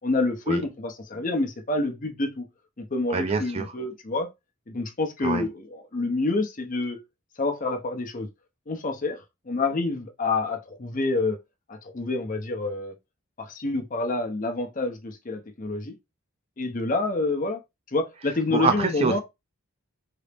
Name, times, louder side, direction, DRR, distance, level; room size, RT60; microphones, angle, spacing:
voice 1, 0.0-2.4 2.9-4.3 4.7-7.0 7.4-8.3 8.7-11.4 11.7-12.9 13.4-15.9 16.6-17.6 17.9-19.2, left 3 dB, 40° left, 0.6 m, -28 dB
voice 2, 3.1-3.7 5.2-5.4 18.5-19.2, right 4 dB, 30° right, 0.4 m, -25 dB
3.8 x 2.0 x 3.4 m
head